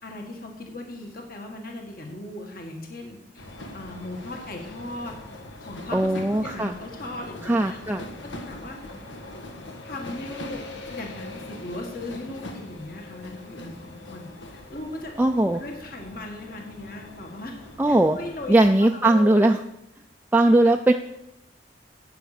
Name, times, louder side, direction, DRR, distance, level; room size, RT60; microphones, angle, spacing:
voice 1, 0.0-3.4 3.7-5.2 5.6-7.8 8.2-8.8 9.8-15.1 15.5-17.5 17.9-18.5 18.8-19.3, left 2 dB, 50° left, 2 dB, 1.7 m, -38 dB
sound 1, 3.4-18.8, left 2 dB, 85° left, 1.5 m, -41 dB
voice 2, 5.9-6.7 7.5-8.0 15.2-15.6 17.8-18.2 18.5-19.6 20.3-20.9, right 1 dB, 10° right, 3 dB, 0.3 m, -19 dB
9.4 x 8.7 x 6.6 m, 0.87 s
head